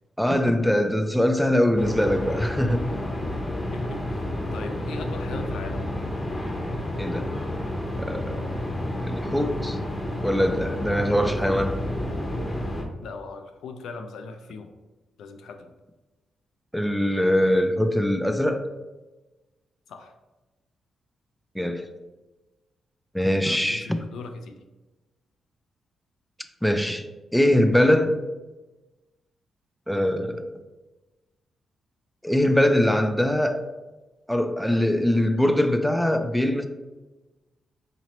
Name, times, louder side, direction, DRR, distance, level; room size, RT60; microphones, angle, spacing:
voice 1, 0.2-2.8 7.0-7.3 8.0-8.4 9.0-9.8 10.2-11.8 16.7-18.6 21.6-21.8 23.1-24.0 26.6-27.0 27.3-28.1 29.9-30.5 32.2-33.6 34.3-36.6, left 1 dB, ahead, 7 dB, 0.4 m, -22 dB
sound 1, 1.8-12.8, left 1 dB, 20° left, 0.7 m, -30 dB
voice 2, 3.7-5.9 11.1-11.6 13.0-14.7 15.2-15.7 19.9-20.1 23.5-24.6, left 4 dB, 85° left, 6 dB, 0.4 m, -39 dB
4.1 x 3.0 x 2.9 m, 1.1 s
cardioid pair, 75°, 0 cm